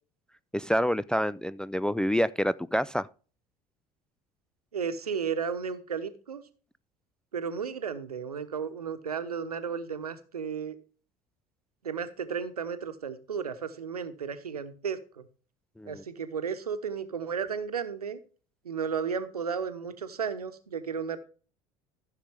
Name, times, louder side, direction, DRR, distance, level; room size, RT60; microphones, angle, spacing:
voice 1, 0.5-3.1 15.8-16.0, equal, 5° left, 0.3 m, -27 dB
voice 2, 4.7-6.4 7.3-10.8 11.8-15.2 15.9-18.2 18.6-21.2, right 6 dB, 80° right, 1.0 m, -33 dB
14.5 x 6.6 x 3.4 m
figure-of-eight pair, 65°, 19 cm